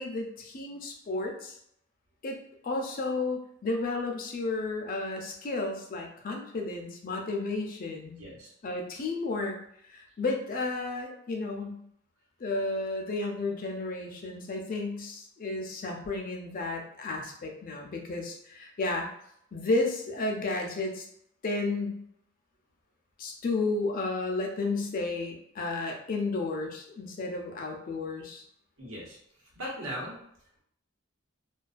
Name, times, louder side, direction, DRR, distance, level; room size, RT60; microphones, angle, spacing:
voice 1, 0.0-1.6 2.2-2.4 2.6-8.2 8.6-9.5 9.9-11.8 12.4-19.1 19.5-21.0 21.4-22.0 23.2-28.4, left 3 dB, 45° left, 1 dB, 0.4 m, -32 dB
voice 2, 8.2-8.5 28.8-30.2, equal, 85° right, -4 dB, 1.0 m, -39 dB
2.3 x 2.3 x 2.4 m, 0.71 s
head